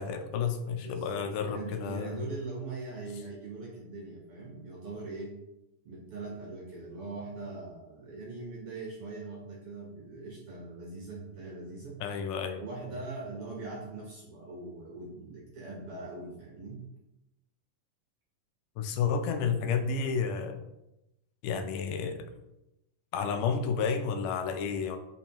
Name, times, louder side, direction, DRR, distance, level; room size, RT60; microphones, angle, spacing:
voice 1, 0.0-2.3 12.0-12.6 18.8-20.6 21.4-22.3 23.1-25.0, left 6 dB, 85° left, 7 dB, 2.2 m, -31 dB
voice 2, 0.8-5.4 5.8-12.0 12.6-16.8, right 3 dB, 60° right, -3 dB, 1.5 m, -41 dB
7.5 x 4.5 x 2.9 m, 0.91 s
omnidirectional pair, 3.7 m